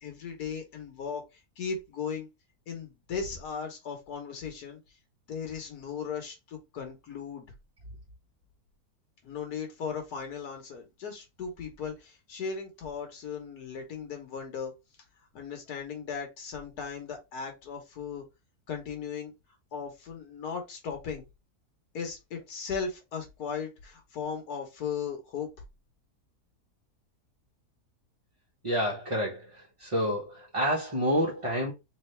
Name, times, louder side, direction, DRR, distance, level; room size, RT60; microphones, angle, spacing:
voice 1, 0.0-2.3 2.7-4.8 5.3-7.5 9.2-14.7 15.3-18.3 18.7-19.3 19.7-21.3 21.9-25.5, left 6 dB, 75° left, 1.6 m, -37 dB
voice 2, 28.6-31.7, equal, 25° right, 0.9 m, -29 dB
3.9 x 3.2 x 3.2 m
omnidirectional pair, 1.7 m